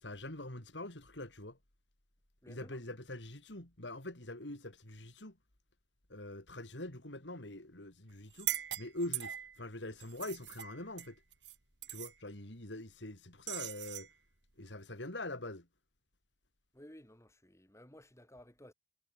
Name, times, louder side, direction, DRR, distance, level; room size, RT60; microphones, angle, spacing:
voice 1, 0.0-1.6 2.5-5.4 6.1-8.5 8.8-11.2 11.9-14.1 14.6-15.7, left 1 dB, 90° left, 4.5 m, -44 dB
voice 2, 2.4-2.8 16.7-18.7, left 1 dB, 15° left, 6.1 m, -56 dB
sound 1, 8.3-9.6 10.0-11.6 11.8-12.1 13.5-14.1, right 13 dB, 80° right, 3.4 m, -40 dB
head